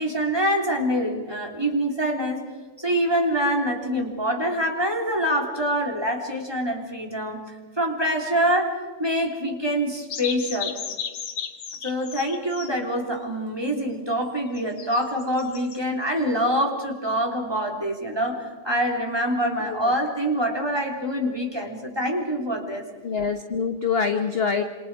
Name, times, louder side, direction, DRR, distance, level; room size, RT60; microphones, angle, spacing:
voice 1, 0.0-2.4 2.8-10.8 11.8-22.8, equal, 10° right, 1 dB, 3.2 m, -25 dB
sound 1, 10.1-12.7 14.5-15.8, left 7 dB, 70° left, 2.3 m, -34 dB
voice 2, 23.0-24.6, left 5 dB, 35° left, 6 dB, 1.1 m, -25 dB
27.5 x 27.0 x 4.8 m, 1.3 s
omnidirectional pair, 2.4 m